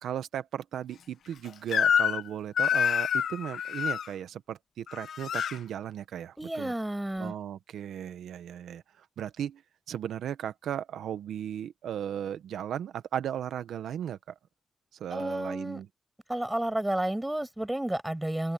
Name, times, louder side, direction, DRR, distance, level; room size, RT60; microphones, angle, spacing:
voice 1, 0.0-6.7 7.2-9.6 9.9-14.2 15.0-15.9, right 10 dB, 90° right, 1.2 m, -36 dB
Crying sobbing / Screech, 1.7-2.3 2.6-4.1 4.9-5.6, left 8 dB, 80° left, 1.1 m, -26 dB
voice 2, 6.4-7.3 15.1-15.8 16.3-18.5, right 1 dB, 10° right, 6.8 m, -31 dB
open air
cardioid pair, 65°, 0 cm